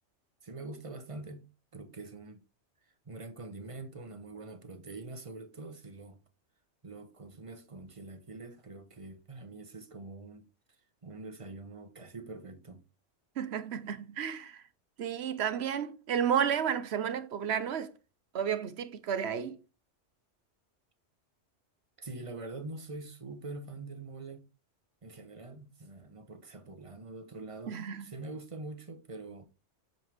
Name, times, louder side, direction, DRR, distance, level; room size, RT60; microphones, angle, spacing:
voice 1, 0.4-1.5 1.7-2.4 2.8-6.2 6.8-10.4 11.0-12.8 22.0-24.5 25.0-29.4, right 2 dB, 30° right, 0.8 m, -44 dB
voice 2, 13.4-14.6 15.0-17.9 18.3-19.6 27.7-28.1, right 8 dB, 65° right, 1.0 m, -32 dB
7.9 x 5.5 x 3.3 m
omnidirectional pair, 1.2 m